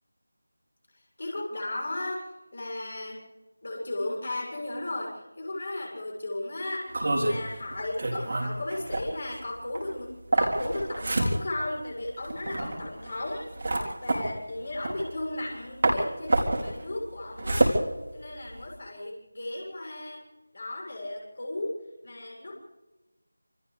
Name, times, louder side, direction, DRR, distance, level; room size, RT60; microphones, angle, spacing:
voice 1, 1.2-3.2 3.6-6.9 7.2-17.7 18.1-20.2 20.5-21.8 22.0-22.5, left 1 dB, 45° left, -1 dB, 7.4 m, -35 dB
sound 1, 6.9-15.5 15.8-18.7, right 2 dB, 40° right, 3.8 m, -28 dB
28.0 x 27.0 x 3.5 m, 1.1 s
figure-of-eight pair, 165°, 0 cm